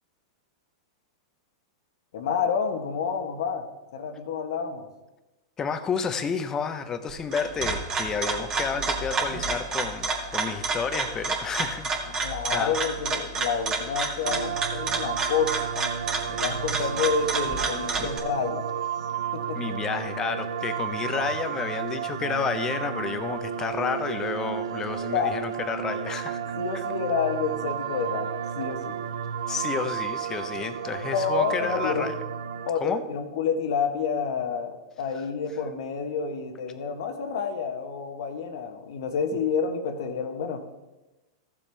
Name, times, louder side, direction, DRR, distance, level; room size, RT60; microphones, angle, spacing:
voice 1, 2.1-3.7 3.9-4.9 12.2-15.8 16.3-18.7 19.3-19.7 21.1-21.3 25.1-25.3 26.6-29.0 31.1-32.1 32.6-40.8, left 6 dB, 70° left, 6 dB, 1.3 m, -29 dB
voice 2, 5.6-11.9 12.5-12.8 16.3-16.4 18.0-18.1 19.5-26.6 29.5-32.1 32.8-33.0, left 5 dB, 25° left, 10 dB, 0.9 m, -31 dB
sound 1, 7.1-18.2, right 4 dB, 25° right, 2.1 m, -29 dB
sound 2, 14.2-32.7, right 8 dB, 80° right, 0.5 m, -32 dB
14.5 x 7.3 x 3.4 m, 1.1 s
hypercardioid pair, 115°, 2 cm